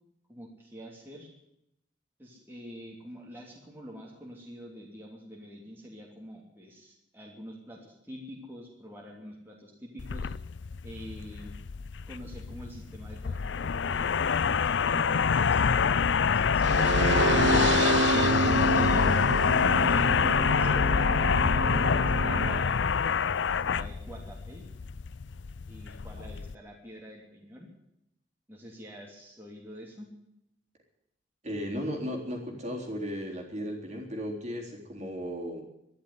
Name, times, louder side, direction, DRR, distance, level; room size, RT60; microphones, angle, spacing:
voice 1, 0.3-1.3 2.2-10.3 10.8-11.5 12.1-15.8 16.2-17.8 18.6-19.1 19.8-21.7 22.0-22.8 23.5-24.6 25.7-27.7 28.5-30.1, equal, 10° right, -2 dB, 2.9 m, -46 dB
sound 1, 10.0-26.5, left 6 dB, 80° left, 0.5 m, -26 dB
sound 2, 16.6-22.6, right 4 dB, 75° right, 0.8 m, -29 dB
voice 2, 31.4-35.6, equal, 40° right, 1 dB, 3.6 m, -35 dB
12.0 x 11.5 x 9.6 m, 0.81 s
head